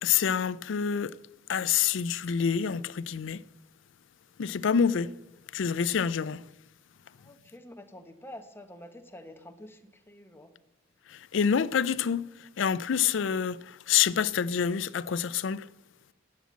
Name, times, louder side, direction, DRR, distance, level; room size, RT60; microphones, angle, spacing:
voice 1, 0.0-1.1 1.5-3.4 4.4-5.1 5.5-6.4 11.1-12.2 12.6-15.7, left 7 dB, 70° left, 0.4 m, -27 dB
voice 2, 7.2-10.5, left 1 dB, 10° left, 1.0 m, -48 dB
11.0 x 7.4 x 8.4 m
head